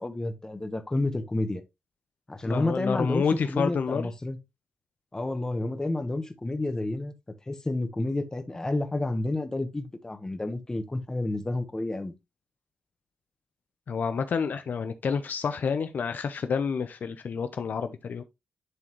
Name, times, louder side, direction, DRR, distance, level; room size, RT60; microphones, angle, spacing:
voice 1, 0.0-1.6 2.3-4.4 5.1-7.1 7.5-12.1, left 2 dB, 20° left, 1.2 m, -30 dB
voice 2, 2.4-4.1 13.9-18.2, left 6 dB, 65° left, 0.7 m, -29 dB
11.0 x 3.9 x 3.1 m
cardioid pair, 95°, 3 cm